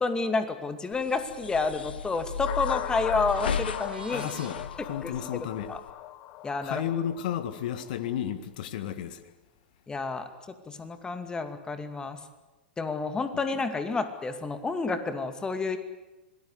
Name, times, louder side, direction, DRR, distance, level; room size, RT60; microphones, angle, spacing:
voice 1, 0.0-4.3 5.0-5.1 5.7-5.8 6.4-6.8 9.9-10.3 10.7-12.2 12.8-15.8, left 3 dB, 15° left, 2.4 m, -30 dB
sound 1, 0.9-5.9, left 6 dB, 75° left, 0.9 m, -36 dB
sound 2, 2.5-8.1, left 14 dB, 40° left, 1.2 m, -39 dB
sound 3, 3.3-4.5 8.4-8.5, right 4 dB, 80° right, 3.2 m, -42 dB
voice 2, 4.1-5.7 6.6-9.3 13.3-13.4, left 10 dB, 55° left, 1.8 m, -33 dB
26.5 x 19.5 x 8.1 m
figure-of-eight pair, 100°, 5 cm